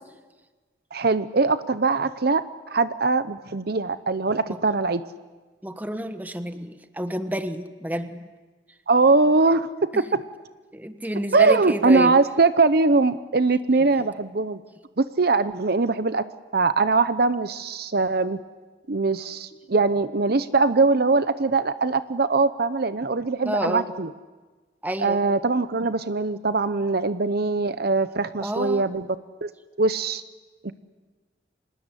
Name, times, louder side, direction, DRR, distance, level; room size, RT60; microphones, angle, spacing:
voice 1, 0.9-2.4 2.7-5.0 8.9-10.2 11.3-14.6 15.0-16.2 16.5-18.4 18.9-24.1 25.0-29.1 29.4-29.5 29.8-30.2 30.6-30.7, right 3 dB, 55° right, 13 dB, 0.8 m, -22 dB
voice 2, 5.6-8.2 9.9-10.0 10.7-12.2 13.9-14.0 23.4-23.8 24.8-25.2 28.4-28.8, equal, 10° right, 9 dB, 1.3 m, -29 dB
26.0 x 19.5 x 9.9 m, 1.3 s
head